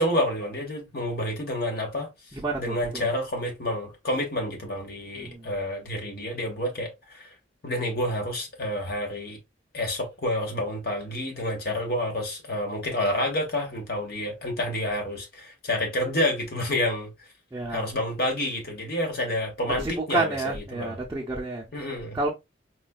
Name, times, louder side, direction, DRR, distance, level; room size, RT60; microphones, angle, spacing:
voice 1, 0.0-2.1 2.6-7.3 7.6-9.4 9.7-17.1 17.7-21.0 21.7-22.2, left 1 dB, 55° left, 1.0 m, -29 dB
voice 2, 2.3-2.8 5.1-5.5 17.5-17.9 19.6-21.6 22.1-22.3, right 3 dB, 15° right, 0.5 m, -29 dB
4.1 x 2.2 x 2.2 m
head